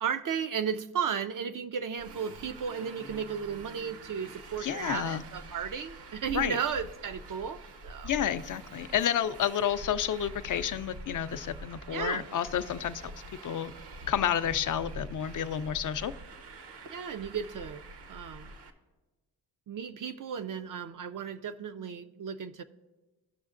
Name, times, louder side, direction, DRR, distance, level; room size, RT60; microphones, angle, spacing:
voice 1, 0.0-8.1 11.9-12.3 16.9-17.8 18.1-18.5 19.7-22.6, right 7 dB, 55° right, 9 dB, 0.4 m, -34 dB
Traffic noise roadway noise, 2.0-18.7, right 2 dB, 75° right, 0.9 m, -46 dB
voice 2, 4.6-5.2 6.3-6.6 8.0-13.1 13.4-13.7 14.1-16.1, left 9 dB, 50° left, 12 dB, 0.4 m, -30 dB
17.0 x 6.3 x 2.5 m, 1.2 s
cardioid pair, 90°, 41 cm